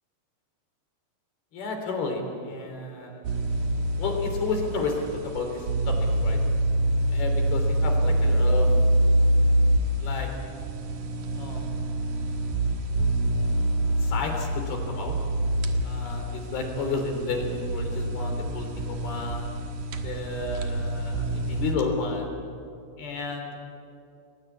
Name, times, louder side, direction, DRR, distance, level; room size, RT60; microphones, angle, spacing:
voice 1, 1.5-3.4 4.0-6.4 7.1-8.7 10.0-10.3 11.4-12.1 14.0-15.2 15.8-19.5 20.0-22.4 23.0-23.6, left 3 dB, 60° left, 3 dB, 5.2 m, -32 dB
sound 1, 3.2-21.7, right 1 dB, 60° right, 2.4 m, -26 dB
29.5 x 20.5 x 8.5 m, 2.5 s
omnidirectional pair, 5.2 m